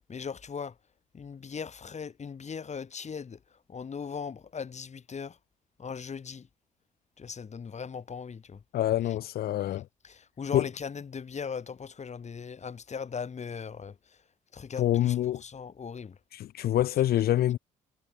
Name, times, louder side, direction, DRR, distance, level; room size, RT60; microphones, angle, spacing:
voice 1, 0.1-0.7 1.1-3.4 3.7-5.3 5.8-6.4 7.2-8.6 10.1-13.9 14.5-15.1 15.4-16.1, left 6 dB, 40° left, 4.4 m, -38 dB
voice 2, 8.7-9.8 10.5-10.7 14.8-15.4 16.3-17.6, left 13 dB, 65° left, 2.9 m, -26 dB
hypercardioid pair, 50°, 17 cm